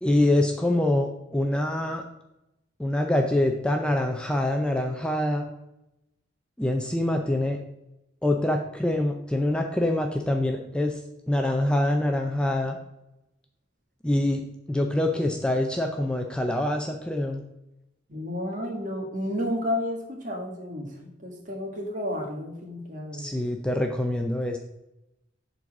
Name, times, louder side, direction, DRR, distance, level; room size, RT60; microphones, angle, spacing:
voice 1, 0.0-2.0 2.8-5.5 6.6-7.6 8.2-11.0 11.3-12.8 14.0-14.4 14.7-17.4 23.2-24.6, left 1 dB, 5° left, 3 dB, 0.5 m, -25 dB
voice 2, 18.1-23.3, left 1 dB, 40° right, 1 dB, 1.7 m, -31 dB
7.3 x 4.0 x 5.9 m, 0.89 s
head